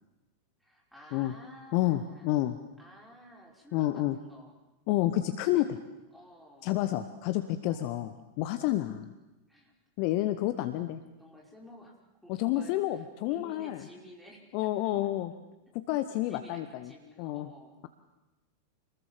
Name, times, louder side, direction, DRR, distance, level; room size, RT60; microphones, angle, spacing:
voice 1, 0.6-2.4 2.8-4.5 6.1-6.8 7.6-8.0 9.5-9.7 11.2-12.0 12.2-15.1 16.3-17.8, equal, ahead, -2 dB, 5.5 m, -53 dB
voice 2, 1.7-2.6 3.7-4.2 4.9-5.8 6.6-9.1 10.0-11.0 12.3-13.8 14.5-15.3 15.7-16.9 17.2-17.5, left 14 dB, 45° left, 11 dB, 1.2 m, -29 dB
27.0 x 20.5 x 7.6 m, 1.1 s
figure-of-eight pair, 90°, 0 cm